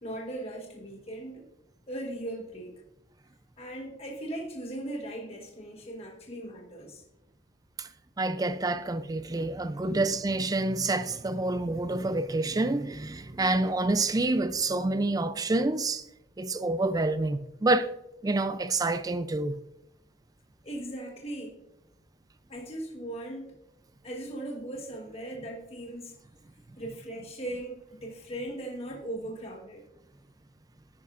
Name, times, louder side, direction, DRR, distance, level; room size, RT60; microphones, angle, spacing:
voice 1, 0.0-1.5 1.9-2.8 3.6-7.0 9.9-10.1 20.6-21.6 22.5-23.5 24.0-26.1 26.8-29.8, right 1 dB, 35° left, 1.2 m, -38 dB
voice 2, 8.2-16.0 16.4-17.9 18.2-19.6, right 2 dB, 20° right, 0.4 m, -28 dB
10.5 x 9.7 x 2.5 m
head